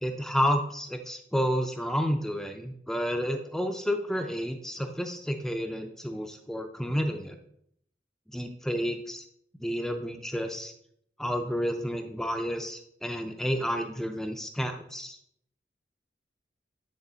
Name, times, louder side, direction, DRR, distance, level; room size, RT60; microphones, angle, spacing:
voice 1, 0.0-7.4 8.3-9.2 9.6-10.7 11.2-15.2, equal, ahead, 5 dB, 0.4 m, -30 dB
9.6 x 4.1 x 3.9 m, 0.72 s
head